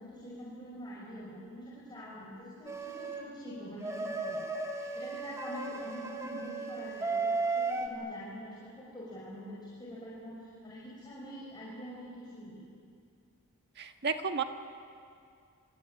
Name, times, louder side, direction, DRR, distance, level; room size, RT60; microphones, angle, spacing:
voice 1, 0.0-12.6, equal, 20° left, -6 dB, 5.8 m, -45 dB
sound 1, 2.7-3.2 3.8-7.9, right 3 dB, 15° right, 2.8 m, -35 dB
voice 2, 13.8-14.4, right 5 dB, 50° right, 6 dB, 1.6 m, -32 dB
26.0 x 25.5 x 8.8 m, 2.3 s
head